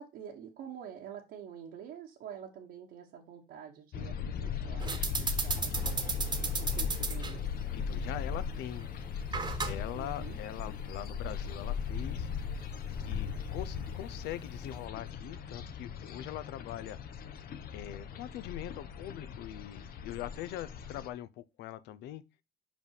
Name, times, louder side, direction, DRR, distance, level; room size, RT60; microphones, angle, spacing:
voice 1, 0.0-7.5 9.9-10.4, right 8 dB, 75° right, 1.2 m, -47 dB
sound 1, 3.9-21.1, left 6 dB, 60° left, 0.9 m, -38 dB
sound 2, 4.8-14.9, right 4 dB, 25° right, 1.1 m, -38 dB
voice 2, 7.7-8.9 9.6-12.3 13.1-17.0 17.7-22.2, left 12 dB, 85° left, 0.6 m, -42 dB
5.3 x 5.2 x 4.7 m
cardioid pair, 110°, 17 cm